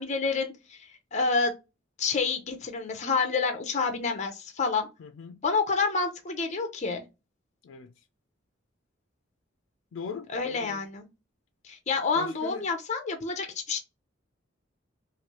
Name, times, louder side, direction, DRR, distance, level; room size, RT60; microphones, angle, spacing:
voice 1, 0.0-1.5 2.0-4.9 5.4-7.0 10.3-11.1 11.6-13.8, left 4 dB, 40° left, 0.6 m, -28 dB
voice 2, 5.0-5.4 7.6-8.0 9.9-10.8 12.2-12.6, left 5 dB, 90° left, 0.3 m, -40 dB
3.1 x 2.6 x 2.9 m
head